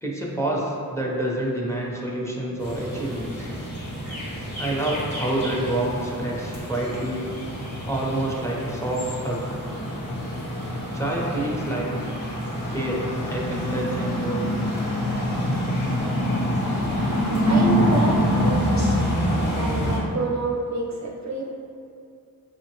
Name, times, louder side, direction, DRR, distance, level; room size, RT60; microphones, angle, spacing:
voice 1, 0.0-3.5 4.6-7.3 7.9-9.6 10.9-12.1 12.7-14.5, right 1 dB, 10° left, -3 dB, 0.6 m, -28 dB
sound 1, 2.6-20.0, equal, 70° left, 1.2 m, -26 dB
voice 2, 17.5-18.9 19.5-21.5, right 2 dB, 50° right, -1 dB, 0.4 m, -28 dB
5.2 x 2.1 x 2.8 m, 2.4 s
wide cardioid pair, 65°, 36 cm